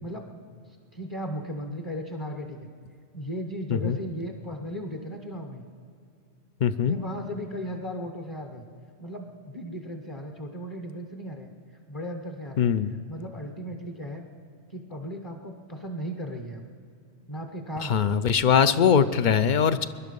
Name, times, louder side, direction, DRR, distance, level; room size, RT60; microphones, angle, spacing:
voice 1, 0.9-2.7 3.1-5.7 6.8-8.6 9.0-11.5 11.9-12.7 13.1-14.3 14.7-16.6 17.3-18.1 18.7-18.9, equal, 30° left, 3 dB, 1.0 m, -36 dB
voice 2, 6.6-7.0 12.6-12.9 17.8-19.9, left 7 dB, 55° left, 12 dB, 0.6 m, -21 dB
20.5 x 11.5 x 5.3 m, 2.4 s
omnidirectional pair, 1.1 m